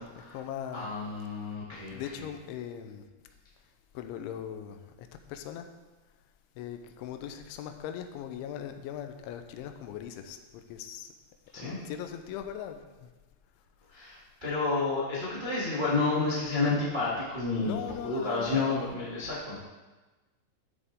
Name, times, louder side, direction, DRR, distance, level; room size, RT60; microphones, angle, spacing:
voice 1, 0.2-1.0 1.7-3.1 3.9-5.7 6.6-11.1 11.6-13.1 17.5-18.8, left 9 dB, 90° left, 7 dB, 3.1 m, -40 dB
voice 2, 0.7-2.0 11.5-11.8 13.9-17.8 18.0-19.6, left 3 dB, 60° right, -9 dB, 0.5 m, -30 dB
12.5 x 6.9 x 3.6 m, 1.2 s
omnidirectional pair, 5.4 m